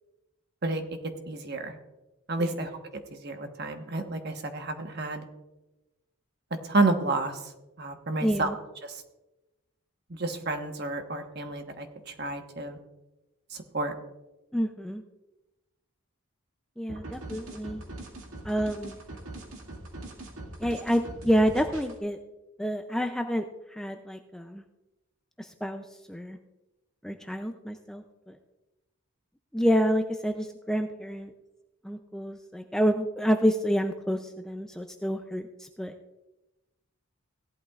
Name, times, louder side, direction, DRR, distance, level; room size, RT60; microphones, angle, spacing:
voice 1, 1.3-1.8 2.3-2.7 3.1-5.2 6.6-7.4 7.8-8.5 8.8-9.0 10.2-12.8 13.7-13.9, right 2 dB, 50° right, 5 dB, 1.2 m, -30 dB
voice 2, 8.2-8.6 14.5-15.0 16.8-17.8 18.4-19.0 20.6-22.2 22.6-23.4 23.7-24.6 25.4-26.4 27.0-28.4 29.5-31.3 31.8-35.9, equal, 5° left, 5 dB, 0.4 m, -28 dB
sound 1, 16.9-22.0, right 1 dB, 75° right, 2.0 m, -42 dB
17.0 x 11.5 x 2.4 m, 1.0 s
head